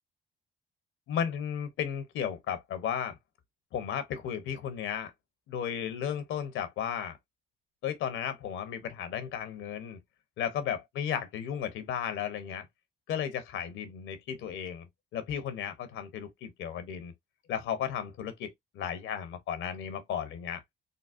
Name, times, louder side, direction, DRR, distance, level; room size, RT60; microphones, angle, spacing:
voice 1, 1.1-3.2 3.7-5.1 5.5-7.2 7.8-10.0 10.4-12.6 13.1-14.9 15.1-17.1 17.5-20.6, left 8 dB, 85° left, 0.9 m, -34 dB
3.9 x 2.1 x 2.5 m
cardioid pair, 90°, 20 cm